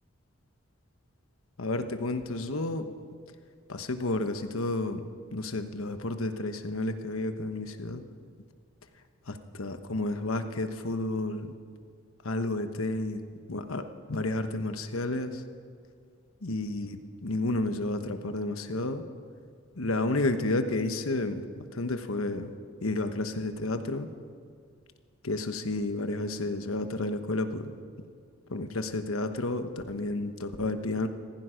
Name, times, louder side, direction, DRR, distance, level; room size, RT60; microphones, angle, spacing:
voice 1, 1.6-2.9 3.7-5.0 5.3-8.0 9.3-11.5 12.2-13.2 13.5-13.8 14.1-15.4 16.4-19.0 19.8-22.5 22.8-24.1 25.2-27.7 28.5-31.1, left 2 dB, 85° left, 8 dB, 1.2 m, -31 dB
16.0 x 15.0 x 5.2 m, 2.2 s
head